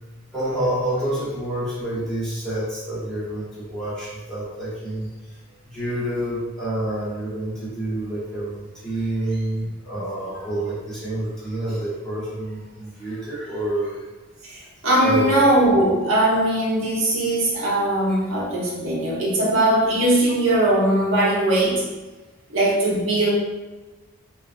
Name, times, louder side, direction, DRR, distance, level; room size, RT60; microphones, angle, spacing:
voice 1, 0.3-5.1 5.6-14.0 15.0-15.5, right 1 dB, ahead, -11 dB, 1.1 m, -28 dB
voice 2, 14.4-21.8 22.5-23.3, right 1 dB, 65° right, -5 dB, 0.8 m, -20 dB
3.8 x 2.3 x 2.5 m, 1.2 s
head